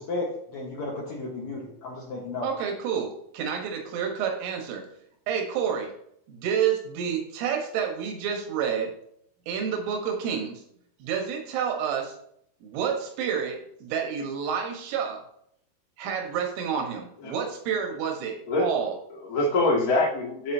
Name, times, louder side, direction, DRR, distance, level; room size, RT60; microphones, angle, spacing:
voice 1, 0.0-2.5, left 2 dB, 85° left, -3 dB, 1.5 m, -33 dB
voice 2, 2.4-4.8 5.3-5.9 6.3-8.9 9.5-10.6 11.0-12.2 12.6-15.2 16.0-18.9, right 7 dB, 85° right, 3 dB, 3.7 m, -29 dB
voice 3, 18.5-20.5, left 2 dB, 55° left, -4 dB, 0.9 m, -25 dB
13.5 x 5.1 x 2.7 m, 0.71 s
omnidirectional pair, 5.4 m